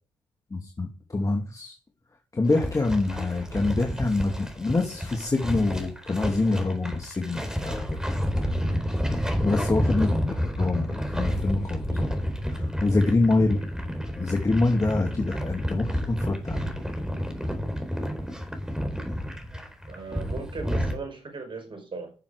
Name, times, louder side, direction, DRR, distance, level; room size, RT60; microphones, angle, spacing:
voice 1, 0.5-1.7 2.3-8.0 9.4-13.6 14.2-16.7, left 2 dB, 30° left, 2.3 m, -26 dB
sound 1, 2.5-21.0, equal, 5° right, 4.1 m, -30 dB
voice 2, 19.9-22.1, right 4 dB, 45° right, 5.2 m, -37 dB
13.0 x 7.0 x 5.0 m
supercardioid pair, 50°, 11 cm